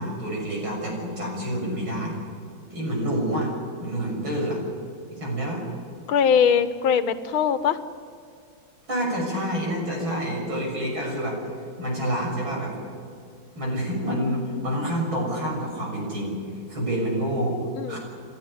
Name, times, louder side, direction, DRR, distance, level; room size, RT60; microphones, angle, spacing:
voice 1, 0.0-2.2 2.7-3.5 3.8-4.6 5.1-5.6 8.9-11.4 11.8-12.7 13.6-16.4 16.7-17.6 17.9-18.0, equal, 80° right, 0 dB, 7.5 m, -27 dB
voice 2, 6.1-7.8 17.8-18.0, left 7 dB, 85° left, 11 dB, 1.9 m, -21 dB
30.0 x 12.5 x 9.8 m, 2.3 s
omnidirectional pair, 2.2 m